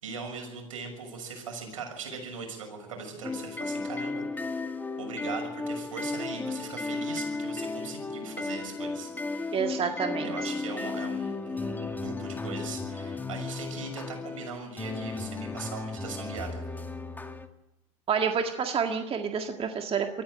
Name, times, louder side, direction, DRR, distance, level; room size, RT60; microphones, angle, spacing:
voice 1, 0.0-4.7 5.0-9.9 10.2-16.6, right 4 dB, 85° right, 3 dB, 6.4 m, -40 dB
sound 1, 3.2-17.5, left 3 dB, 10° left, 2.0 m, -34 dB
voice 2, 9.5-10.5 18.1-20.1, right 6 dB, 35° right, 5 dB, 1.8 m, -29 dB
23.5 x 14.5 x 9.2 m, 0.93 s
hypercardioid pair, 80°, 17 cm